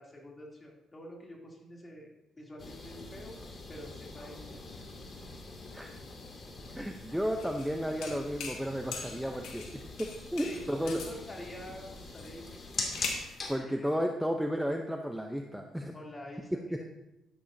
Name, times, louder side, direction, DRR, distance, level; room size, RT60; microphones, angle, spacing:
voice 1, 0.0-2.1 2.4-3.4 3.7-4.8 10.4-12.7 13.6-14.1 15.9-16.9, left 1 dB, 25° left, -2 dB, 3.0 m, -47 dB
sound 1, 2.6-13.6, left 3 dB, 45° left, 2.4 m, -43 dB
voice 2, 6.7-11.0 13.5-15.9 16.5-16.6, equal, ahead, 3 dB, 0.8 m, -33 dB
sound 2, 7.4-7.7 8.0-8.6 8.9-9.7 10.0-11.2 12.2-13.3, left 5 dB, 85° left, 1.7 m, -41 dB
11.5 x 11.0 x 2.8 m, 0.88 s
cardioid pair, 90°, 0 cm